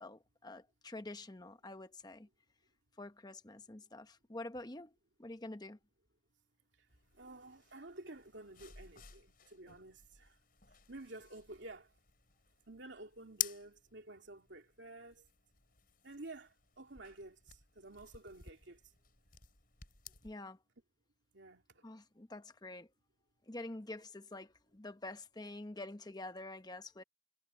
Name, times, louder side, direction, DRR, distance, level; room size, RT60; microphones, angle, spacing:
voice 1, 0.0-2.3 3.0-4.9 5.2-5.8 20.2-20.6 21.8-22.9 23.5-27.0, left 2 dB, 20° left, 1.0 m, -47 dB
sound 1, 6.9-20.3, left 11 dB, 50° left, 5.6 m, -50 dB
voice 2, 7.2-10.4 10.9-11.9 12.7-15.3 16.0-18.8 21.3-21.8, right 2 dB, 80° right, 2.7 m, -51 dB
head